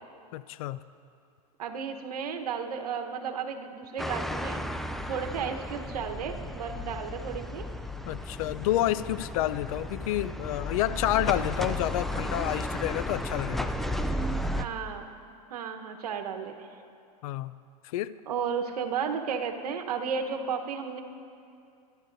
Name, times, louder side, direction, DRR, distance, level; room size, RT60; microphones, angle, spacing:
voice 1, 0.3-0.8 8.1-13.7 17.2-17.5 17.8-18.1, left 14 dB, 65° left, 16 dB, 0.5 m, -29 dB
voice 2, 1.6-4.6 5.1-7.6 14.6-15.1 15.5-16.7 18.3-21.0, right 6 dB, 85° right, 5 dB, 1.1 m, -33 dB
sound 1, 4.0-14.7, left 1 dB, ahead, 0.4 m, -34 dB
24.5 x 11.5 x 2.6 m, 2.5 s
hypercardioid pair, 115°, 19 cm